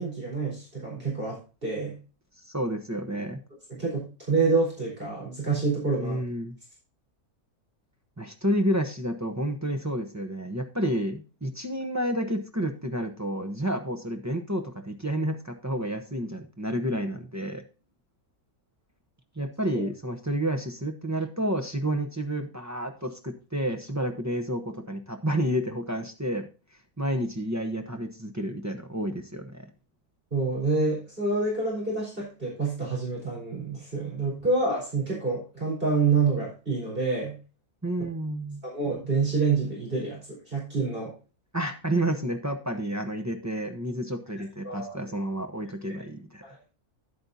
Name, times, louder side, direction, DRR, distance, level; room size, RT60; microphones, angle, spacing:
voice 1, 0.0-2.0 3.7-6.2 19.7-19.8 30.3-37.4 38.6-41.1 44.6-45.0, right 4 dB, 35° right, -4 dB, 4.6 m, -27 dB
voice 2, 2.4-3.4 6.0-6.6 8.2-17.6 19.4-26.5 27.0-29.6 37.8-38.6 41.5-46.4, right 1 dB, 15° right, 4 dB, 0.7 m, -30 dB
10.5 x 8.7 x 2.7 m, 0.33 s
omnidirectional pair, 1.5 m